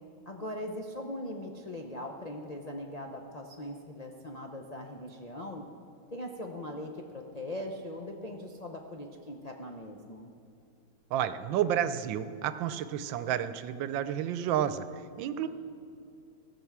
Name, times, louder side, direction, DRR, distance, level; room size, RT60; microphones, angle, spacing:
voice 1, 0.3-5.7 6.1-10.3, left 1 dB, 60° left, 1 dB, 0.4 m, -40 dB
voice 2, 11.1-14.8 15.2-15.5, right 10 dB, 90° right, 12 dB, 1.3 m, -30 dB
17.0 x 6.1 x 7.3 m, 2.7 s
omnidirectional pair, 2.0 m